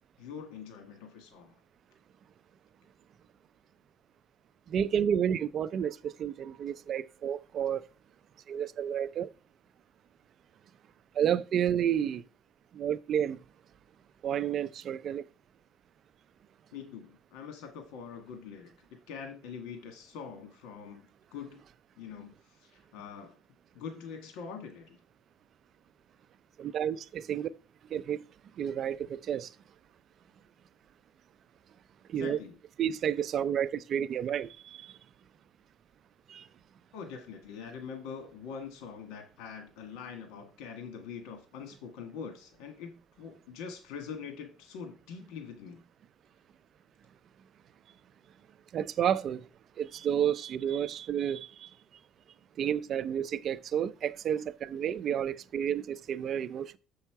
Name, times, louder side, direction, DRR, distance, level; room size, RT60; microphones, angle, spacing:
voice 1, 0.2-1.6 16.7-18.7 19.1-21.6 22.0-22.3 22.7-23.4 23.7-25.0 32.2-32.5 36.9-45.8, left 6 dB, 85° left, 1.5 m, -44 dB
voice 2, 4.7-7.8 8.5-9.3 11.2-12.2 12.7-13.4 14.2-15.2 26.6-27.5 27.9-28.2 28.6-29.5 32.1-32.4 32.8-34.9 36.3-36.4 48.7-49.4 49.8-51.7 52.6-56.8, right 9 dB, 50° right, 0.5 m, -31 dB
7.0 x 5.5 x 4.6 m
cardioid pair, 115°, 0 cm